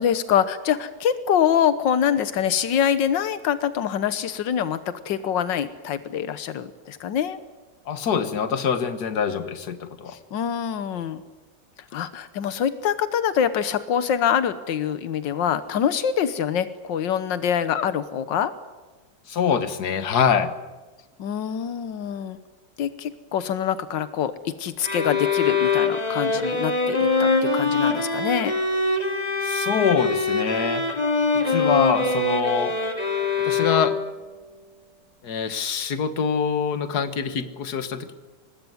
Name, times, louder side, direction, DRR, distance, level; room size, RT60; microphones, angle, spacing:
voice 1, 0.0-7.4 10.1-11.2 11.9-18.5 21.2-22.4 22.8-28.5, left 9 dB, 90° left, 12 dB, 1.7 m, -25 dB
voice 2, 7.9-10.2 19.3-20.5 29.4-30.9 31.5-32.7 33.4-34.0 35.2-38.1, left 7 dB, 60° left, 10 dB, 2.0 m, -24 dB
sound 1, 24.8-34.3, left 3 dB, 20° left, 2.6 m, -23 dB
24.5 x 20.0 x 9.5 m, 1.2 s
omnidirectional pair, 1.9 m